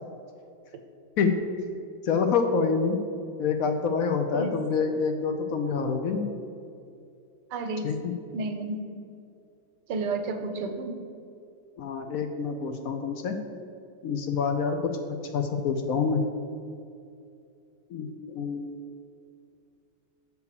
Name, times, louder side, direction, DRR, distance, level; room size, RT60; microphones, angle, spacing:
voice 1, 2.0-3.0 3.4-6.2 7.8-8.1 11.8-13.4 14.0-14.9 15.3-16.2 17.9-18.7, left 5 dB, 65° left, 5 dB, 0.9 m, -27 dB
voice 2, 7.5-7.9 8.3-8.8 9.9-11.0, right 3 dB, 90° right, 6 dB, 1.4 m, -31 dB
6.9 x 4.6 x 6.6 m, 2.5 s
omnidirectional pair, 1.8 m